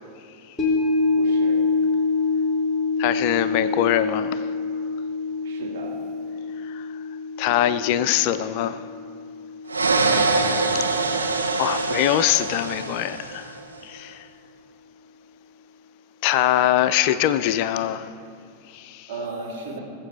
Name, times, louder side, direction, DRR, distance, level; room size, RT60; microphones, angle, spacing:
sound 1, 0.6-11.0 11.3-11.4, left 3 dB, ahead, 2.6 m, -26 dB
voice 1, 1.1-1.6 5.4-5.9 10.0-10.4 19.1-19.8, right 3 dB, 50° right, 2.5 m, -34 dB
voice 2, 3.0-4.5 6.6-7.0 7.4-8.9 10.9-11.0 11.6-14.3 16.2-18.1 18.7-19.1, left 12 dB, 45° left, 0.4 m, -23 dB
sound 2, 9.7-13.6, right 3 dB, 75° right, 0.9 m, -24 dB
20.0 x 7.5 x 4.5 m
figure-of-eight pair, 90°, 0 cm